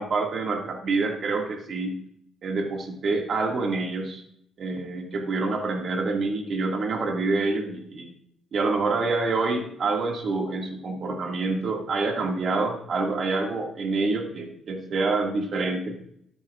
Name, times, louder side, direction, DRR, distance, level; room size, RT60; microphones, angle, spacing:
voice 1, 0.0-1.9 2.4-4.2 4.6-8.1 8.5-16.0, right 3 dB, 55° right, 2 dB, 2.0 m, -27 dB
13.0 x 9.4 x 2.5 m, 0.71 s
cardioid pair, 90°, 0 cm